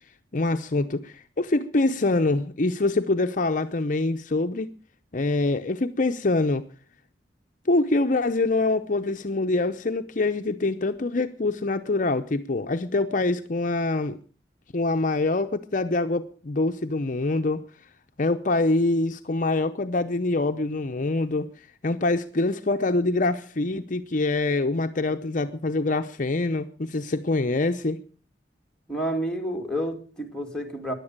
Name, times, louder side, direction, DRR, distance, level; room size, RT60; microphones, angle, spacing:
voice 1, 0.3-4.7 5.1-6.6 7.7-14.2 14.7-17.6 18.2-21.5 21.8-28.0, left 2 dB, 50° left, 0.7 m, -25 dB
voice 2, 28.9-30.9, equal, 5° left, 2.6 m, -29 dB
16.0 x 11.0 x 6.6 m
head